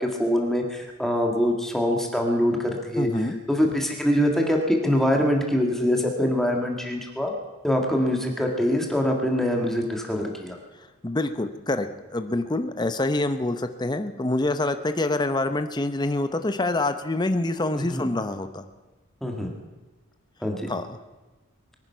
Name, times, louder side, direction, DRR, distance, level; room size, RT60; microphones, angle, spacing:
voice 1, 0.0-3.1 3.5-7.3 7.6-10.6 17.8-18.1 19.2-19.5 20.4-20.7, equal, ahead, 1 dB, 1.8 m, -24 dB
voice 2, 3.0-3.4 11.0-11.9 12.1-18.6 20.7-21.0, left 2 dB, 20° left, 9 dB, 0.8 m, -26 dB
23.0 x 10.5 x 5.7 m, 1.2 s
head